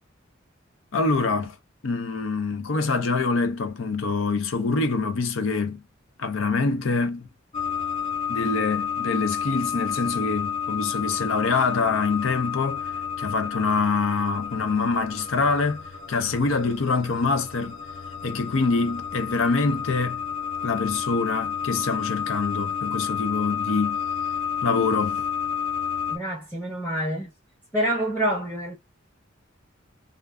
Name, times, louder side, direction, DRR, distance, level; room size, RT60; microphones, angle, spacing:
voice 1, 0.9-1.5 1.8-5.8 6.2-7.3 8.3-12.9 13.2-17.8 18.2-20.2 20.6-24.0 24.6-25.2, left 4 dB, 85° left, 0.6 m, -25 dB
sound 1, 7.5-26.2, left 7 dB, 35° left, 0.5 m, -30 dB
voice 2, 26.1-27.3 27.7-28.8, right 1 dB, 10° left, 0.9 m, -27 dB
2.5 x 2.4 x 2.3 m
head